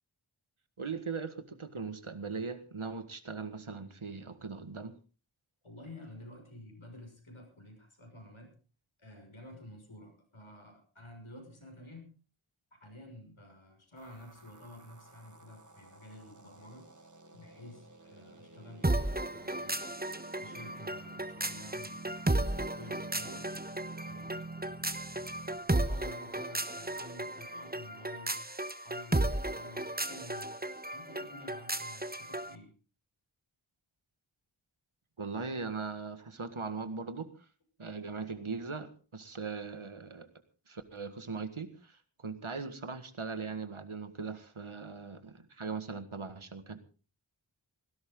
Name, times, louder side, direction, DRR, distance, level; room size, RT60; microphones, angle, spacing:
voice 1, 0.8-4.9 35.2-37.3 37.8-40.3 40.7-46.8, right 4 dB, 85° right, 10 dB, 1.9 m, -39 dB
voice 2, 5.6-8.6 9.0-12.1 12.7-16.9 17.3-19.8 20.4-23.5 24.0-28.4 28.8-30.6 30.9-32.8, left 1 dB, 90° left, 4 dB, 6.3 m, -51 dB
sound 1, 14.0-25.6, right 2 dB, 40° right, 1.6 m, -49 dB
sound 2, 18.8-32.5, right 1 dB, 20° right, 1.2 m, -34 dB
18.5 x 16.5 x 3.8 m, 0.36 s
wide cardioid pair, 40°, 48 cm